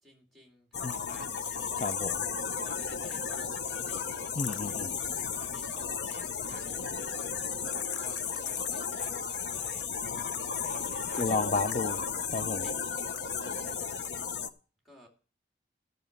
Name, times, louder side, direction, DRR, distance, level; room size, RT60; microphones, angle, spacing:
voice 1, 0.0-1.7 2.6-4.0 5.4-9.9 10.6-12.0 12.6-12.8 13.5-13.9 14.8-15.1, equal, ahead, 2.6 m, -54 dB
sound 1, 0.7-14.5, left 6 dB, 75° left, 0.7 m, -34 dB
voice 2, 1.8-2.2 4.4-5.0 10.0-10.5 11.2-12.0 12.3-12.6, left 3 dB, 40° left, 0.4 m, -32 dB
14.0 x 6.7 x 5.2 m
head